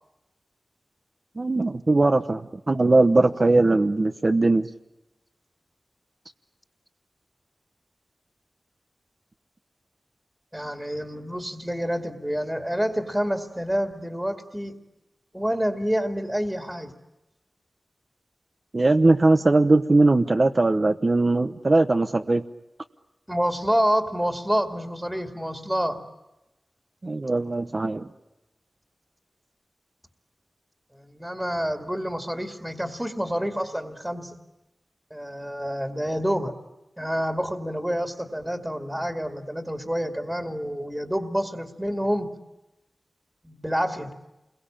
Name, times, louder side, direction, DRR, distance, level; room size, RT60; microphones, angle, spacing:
voice 1, 1.4-2.4 2.7-4.7 18.7-22.4 27.0-28.1, right 2 dB, 45° right, 6 dB, 1.0 m, -20 dB
voice 2, 10.5-14.8 15.3-16.9 23.3-26.0 30.9-34.4 35.1-36.5 37.0-42.3 43.4-44.1, equal, 10° right, 5 dB, 2.2 m, -28 dB
28.5 x 22.5 x 8.8 m, 0.99 s
wide cardioid pair, 60°, 0 cm